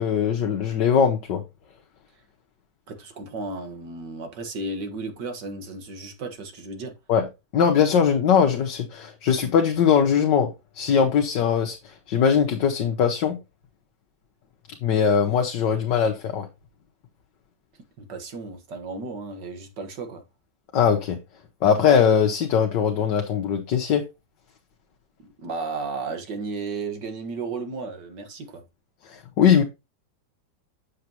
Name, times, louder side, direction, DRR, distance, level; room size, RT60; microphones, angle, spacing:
voice 1, 0.0-1.4 7.1-7.3 7.5-10.5 10.8-13.4 14.8-16.5 20.7-21.2 21.6-24.0 29.1-29.6, left 7 dB, 75° left, 1.7 m, -21 dB
voice 2, 2.9-6.9 18.0-20.2 25.2-28.6, right 3 dB, 75° right, 2.1 m, -34 dB
8.4 x 6.8 x 2.9 m
omnidirectional pair, 1.9 m